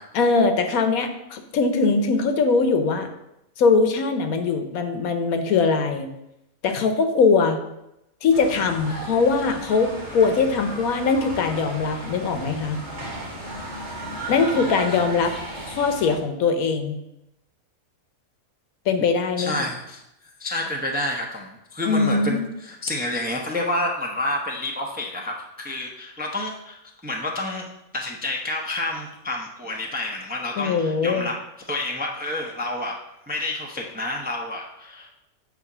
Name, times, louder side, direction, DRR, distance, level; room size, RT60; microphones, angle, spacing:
voice 1, 0.1-3.1 3.6-6.1 6.6-7.6 8.2-12.8 14.3-15.3 15.7-16.9 18.9-19.5 21.9-22.5 30.6-31.3, left 4 dB, 75° left, 7 dB, 1.2 m, -21 dB
sound 1, 8.3-16.2, right 1 dB, 50° right, 2.1 m, -35 dB
voice 2, 19.4-20.0 20.4-27.7 27.9-31.3 31.7-33.0 33.3-35.1, left 1 dB, 10° right, 0 dB, 0.5 m, -29 dB
8.2 x 2.8 x 6.0 m, 0.87 s
omnidirectional pair, 1.5 m